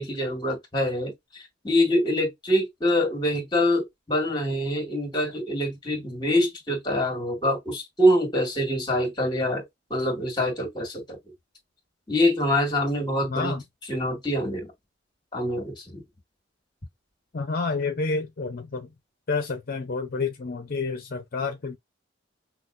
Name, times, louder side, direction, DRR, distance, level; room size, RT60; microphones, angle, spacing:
voice 1, 0.0-9.6 9.9-11.2 12.1-13.6 13.9-14.7 15.3-16.0, left 1 dB, 25° left, 2.0 m, -25 dB
voice 2, 13.3-13.6 17.3-18.9 19.3-21.8, left 4 dB, 50° left, 0.6 m, -29 dB
5.9 x 2.4 x 2.5 m
head